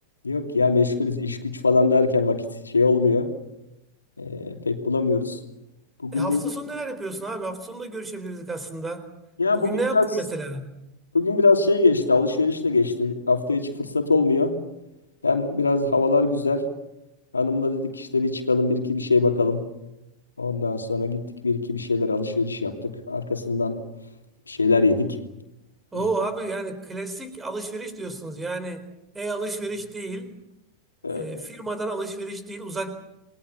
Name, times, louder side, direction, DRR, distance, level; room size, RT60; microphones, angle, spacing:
voice 1, 0.2-3.3 4.2-5.4 6.0-6.4 9.4-10.1 11.1-14.6 15.2-16.7 17.3-19.6 20.4-23.8 24.5-25.2 25.9-26.1 31.0-31.5, left 3 dB, 75° left, 5 dB, 2.9 m, -22 dB
voice 2, 6.1-9.1 9.5-10.8 25.9-28.9 29.1-30.4 31.1-32.9, right 2 dB, 15° right, 11 dB, 4.1 m, -31 dB
28.5 x 22.0 x 7.2 m, 0.90 s
figure-of-eight pair, 90°, 0 cm